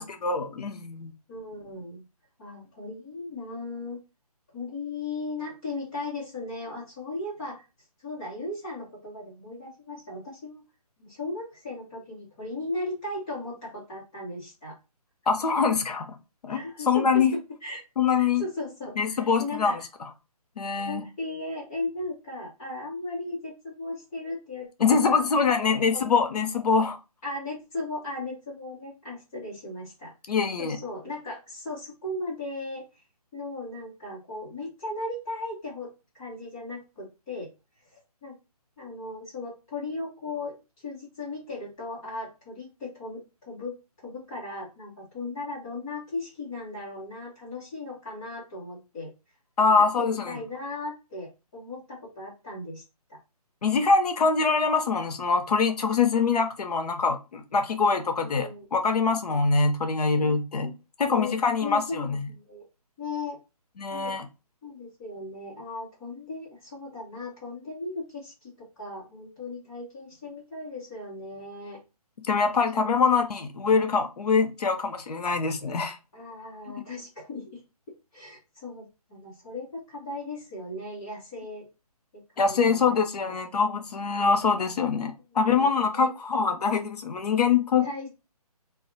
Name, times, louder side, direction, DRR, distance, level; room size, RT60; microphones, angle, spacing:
voice 1, 0.0-1.1 15.3-16.1 16.4-17.3 18.0-18.4 19.0-19.8 20.6-21.0 24.8-27.0 30.3-30.8 49.6-50.4 53.6-60.7 61.0-62.3 63.8-64.3 72.3-76.0 82.4-87.9, left 5 dB, 80° left, 0.6 m, -24 dB
voice 2, 1.3-2.0 2.4-4.0 4.5-7.6 8.0-10.6 11.0-14.7 16.5-17.2 17.6-17.8 18.2-19.9 20.8-25.2 25.6-26.1 27.2-30.1 30.6-32.9 33.3-37.5 37.9-38.3 38.8-40.5 40.8-49.1 49.7-52.8 53.1-53.2 58.2-58.7 60.1-60.3 60.6-60.7 61.1-61.3 61.6-62.6 63.0-63.4 63.9-64.1 64.6-71.8 72.7-72.9 76.1-77.6 78.1-81.7 82.1-83.0 83.2-83.3 85.5-85.7 85.9-86.1 87.8-88.1, left 2 dB, 10° left, 0.7 m, -37 dB
2.3 x 2.0 x 3.7 m
hypercardioid pair, 170°, 20 cm